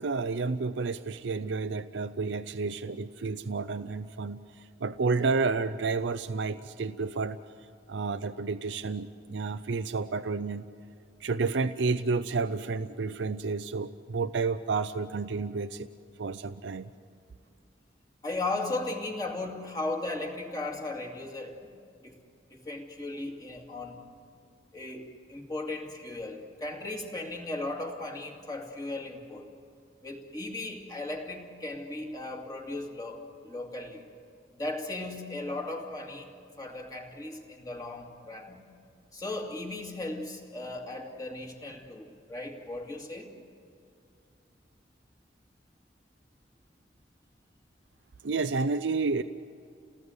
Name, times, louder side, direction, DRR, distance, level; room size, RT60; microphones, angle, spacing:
voice 1, 0.0-7.4 7.9-10.7 11.2-15.9 16.2-16.9 48.2-49.2, right 4 dB, 80° right, 10 dB, 0.6 m, -30 dB
voice 2, 18.2-21.7 22.0-22.2 22.5-24.0 24.7-29.5 30.0-34.0 34.6-36.3 36.6-38.6 39.1-43.3, left 2 dB, 20° left, 1 dB, 2.5 m, -36 dB
29.5 x 19.0 x 8.0 m, 2.4 s
head